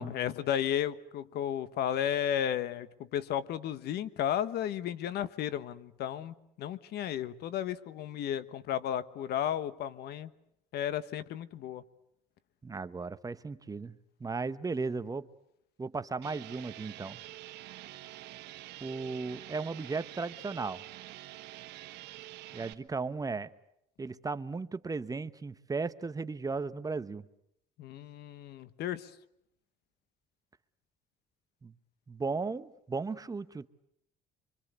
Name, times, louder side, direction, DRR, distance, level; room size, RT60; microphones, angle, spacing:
voice 1, 0.0-2.9 3.1-10.3 10.7-11.8 27.8-29.1, left 10 dB, 70° left, 14 dB, 1.3 m, -33 dB
voice 2, 12.6-15.3 15.8-17.2 18.8-20.8 22.5-23.5 24.0-27.3 31.6-31.7 32.1-33.7, right 4 dB, 20° right, 12 dB, 1.0 m, -36 dB
sound 1, 16.2-22.7, right 16 dB, 85° right, 1.4 m, -47 dB
26.0 x 25.0 x 8.3 m, 0.77 s
cardioid pair, 110°, 17 cm